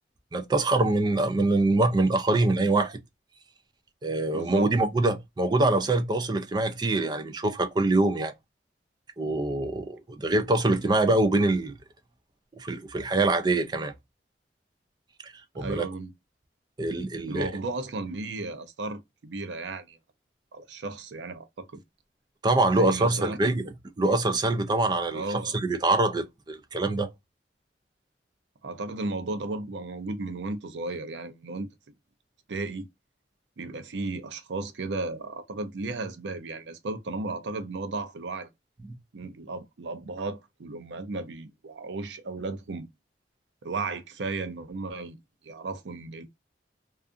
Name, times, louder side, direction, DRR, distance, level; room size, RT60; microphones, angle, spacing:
voice 1, 0.3-3.0 4.0-8.3 9.2-11.7 12.6-13.9 15.2-15.9 16.8-17.5 22.4-23.6 24.0-25.2 25.5-27.1, right 2 dB, 25° right, 0.4 m, -24 dB
voice 2, 4.3-4.7 15.6-16.1 17.3-20.0 20.5-21.8 22.8-23.6 25.1-25.5 28.6-31.7 32.5-32.9 33.6-38.5 39.1-42.9 43.6-45.2 45.4-46.2, right 3 dB, 85° right, 0.5 m, -34 dB
2.5 x 2.4 x 2.3 m
head